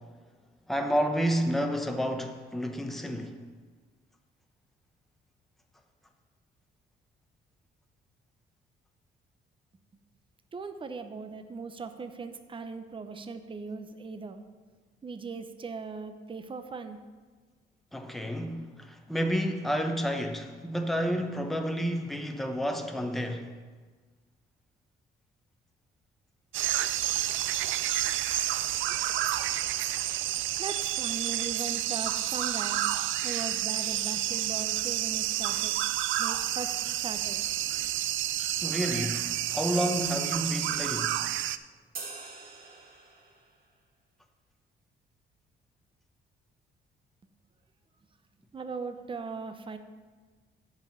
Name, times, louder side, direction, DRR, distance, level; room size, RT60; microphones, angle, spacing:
voice 1, 0.7-3.4 17.9-23.5 38.6-41.2, equal, ahead, 0.9 m, -30 dB
voice 2, 10.5-14.4 15.0-17.0 30.6-32.8 33.2-35.7 36.2-36.7 37.0-37.4 48.5-49.8, right 4 dB, 25° right, 0.7 m, -39 dB
sound 1, 26.5-41.6, right 13 dB, 75° right, 0.4 m, -30 dB
sound 2, 42.0-43.6, right 4 dB, 50° right, 1.8 m, -44 dB
8.2 x 5.5 x 7.2 m
cardioid pair, 90°, 20 cm